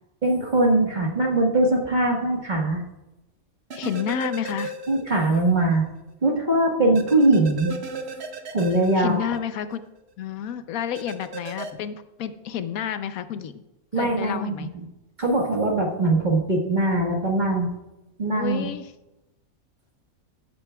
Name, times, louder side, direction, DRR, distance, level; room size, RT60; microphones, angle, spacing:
voice 1, 0.2-2.8 4.9-5.8 6.2-7.7 8.5-9.3 13.9-14.8 15.2-17.7 18.2-18.7, right 2 dB, 35° right, 0 dB, 1.5 m, -21 dB
voice 2, 3.7-4.7 8.9-9.8 10.2-13.6 13.9-14.7 18.4-18.9, left 8 dB, 75° left, 11 dB, 1.1 m, -30 dB
sound 1, 3.7-5.4 5.7-5.8 6.9-9.8 10.9-11.7, right 4 dB, 50° right, 1.1 m, -35 dB
14.0 x 9.5 x 2.3 m, 0.96 s
omnidirectional pair, 1.5 m